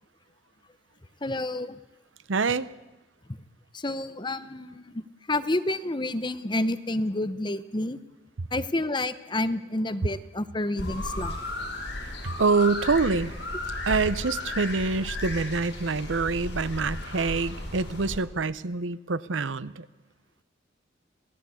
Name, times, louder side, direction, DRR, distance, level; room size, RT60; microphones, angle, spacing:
voice 1, 1.2-1.8 3.7-5.0 5.3-8.0 8.5-11.4, left 1 dB, 25° left, 12 dB, 0.8 m, -29 dB
voice 2, 2.3-2.7 12.2-13.3 13.9-19.9, right 4 dB, 80° right, 16 dB, 0.8 m, -26 dB
sound 1, 10.8-18.2, left 1 dB, 60° left, 6.4 m, -34 dB
27.5 x 17.0 x 8.4 m, 1.1 s
head